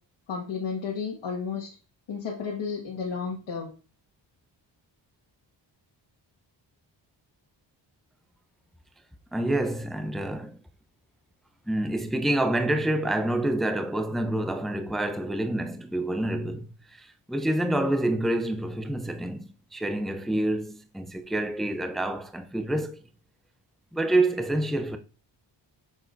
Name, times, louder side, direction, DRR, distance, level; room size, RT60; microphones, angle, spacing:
voice 1, 0.3-1.7 2.1-3.7, left 5 dB, 80° left, 1.7 m, -32 dB
voice 2, 9.3-10.6 11.7-23.0 23.9-25.0, right 1 dB, ahead, 0.5 m, -27 dB
8.4 x 6.3 x 2.6 m
wide cardioid pair, 120°, 44 cm